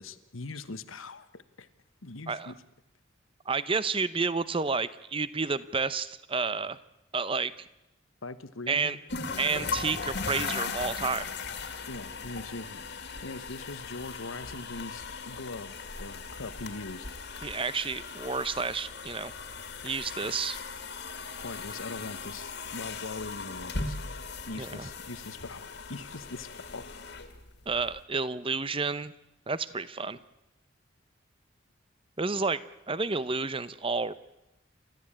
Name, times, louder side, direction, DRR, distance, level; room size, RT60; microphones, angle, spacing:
voice 1, 0.0-1.7 2.0-2.5 8.2-9.0 11.9-12.8 13.2-17.0 21.4-24.0 24.5-26.9, left 3 dB, 90° left, 13 dB, 1.3 m, -41 dB
voice 2, 3.5-6.8 7.1-7.5 8.7-9.0 9.4-11.3 17.4-19.3 19.8-20.6 24.6-24.9 27.7-29.1 29.5-30.2 32.2-34.1, right 4 dB, 25° right, 15 dB, 0.8 m, -30 dB
sound 1, 9.1-28.0, left 4 dB, 60° left, 2.2 m, -38 dB
29.0 x 13.5 x 8.8 m, 0.93 s
head